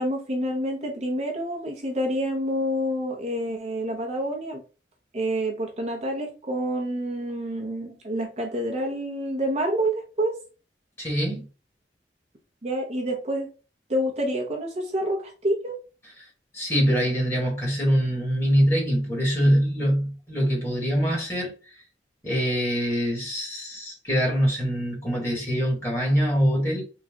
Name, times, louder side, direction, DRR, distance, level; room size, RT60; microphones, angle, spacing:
voice 1, 0.0-4.6 5.1-10.3 12.6-13.5 13.9-15.8, right 1 dB, 40° right, 0.8 m, -28 dB
voice 2, 11.0-11.4 16.5-21.5 22.2-26.8, equal, 15° left, 1.5 m, -24 dB
4.0 x 2.3 x 3.6 m
head